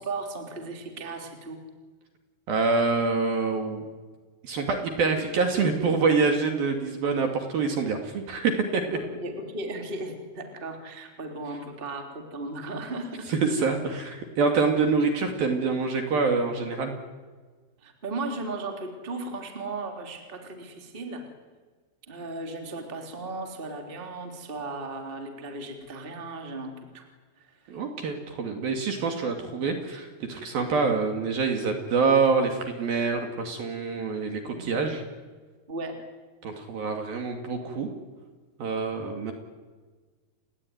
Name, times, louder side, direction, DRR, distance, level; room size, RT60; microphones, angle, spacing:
voice 1, 0.0-1.6 5.1-5.3 9.0-13.3 17.8-21.2 22.1-27.1 27.4-27.5 34.4-34.7 35.7-36.0, right 2 dB, 15° right, 4 dB, 2.5 m, -36 dB
voice 2, 2.5-3.8 4.4-9.0 13.3-16.9 27.7-35.0 36.4-37.9 38.6-39.3, right 4 dB, 55° right, 4 dB, 3.7 m, -26 dB
29.5 x 19.5 x 9.6 m, 1.4 s
omnidirectional pair, 5.8 m